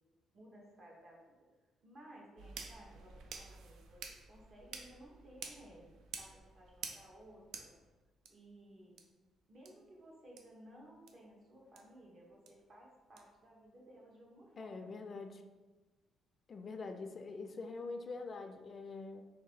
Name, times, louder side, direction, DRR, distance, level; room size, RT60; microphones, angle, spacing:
voice 1, 0.3-1.4 1.8-5.9 6.2-7.7 8.3-9.0 9.5-14.9, right 1 dB, 55° right, -2 dB, 1.1 m, -58 dB
sound 1, 2.4-8.3 9.0-9.1 9.6-9.7 10.4-10.5 11.1-11.2 11.8-11.9 12.5-12.6 13.2-13.3, right 5 dB, 85° right, 0.4 m, -50 dB
voice 2, 14.6-15.4 16.5-19.2, left 3 dB, 45° left, 6 dB, 0.4 m, -44 dB
3.2 x 2.8 x 4.6 m, 1.3 s
cardioid pair, 90°, 0 cm